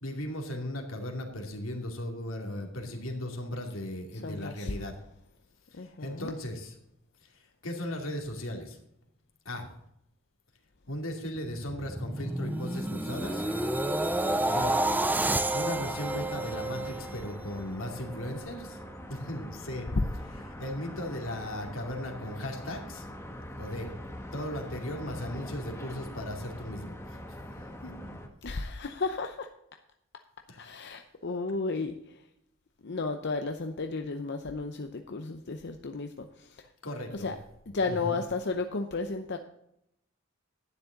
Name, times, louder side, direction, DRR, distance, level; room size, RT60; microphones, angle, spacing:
voice 1, 0.0-5.0 5.7-6.7 7.2-8.8 9.4-9.7 10.9-13.4 14.5-14.8 15.2-18.8 19.1-19.9 20.6-23.1 23.6-23.9 24.3-27.4 27.8-28.2 30.5-30.9 36.8-37.4 37.8-38.2, left 1 dB, 85° left, 2 dB, 2.5 m, -37 dB
voice 2, 4.2-4.7 5.8-6.3 28.4-29.5 30.6-31.9 32.8-36.3 37.2-37.4 37.7-39.4, left 3 dB, 55° left, 5 dB, 0.7 m, -33 dB
sound 1, 11.4-17.6 18.1-18.3, right 2 dB, 10° right, 0.5 m, -30 dB
sound 2, 13.2-28.3, left 1 dB, 15° left, 1.4 m, -43 dB
11.5 x 9.7 x 3.9 m, 0.77 s
head